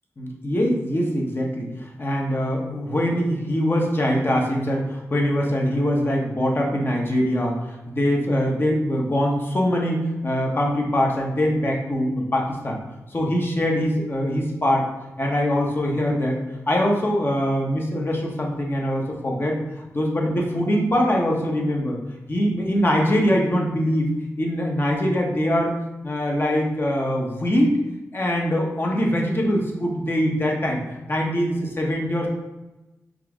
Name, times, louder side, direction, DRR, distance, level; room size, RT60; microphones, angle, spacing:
voice 1, 0.2-12.8 13.1-14.9 15.2-22.0 22.3-24.1 24.4-25.7 26.0-27.7 28.1-32.3, equal, 40° left, -1 dB, 1.1 m, -23 dB
5.4 x 2.6 x 3.6 m, 1.0 s
cardioid pair, 55°, 6 cm